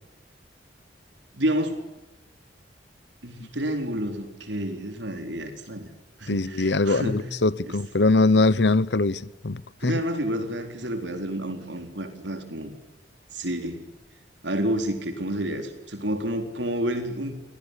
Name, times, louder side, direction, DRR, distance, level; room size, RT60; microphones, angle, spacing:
voice 1, 1.3-1.8 3.2-5.9 6.2-7.3 7.7-7.8 9.8-12.7 13.3-13.8 14.4-17.3, right 1 dB, 85° right, 4.1 m, -29 dB
voice 2, 6.3-10.0, left 2 dB, 70° left, 0.9 m, -22 dB
28.0 x 19.0 x 10.0 m
head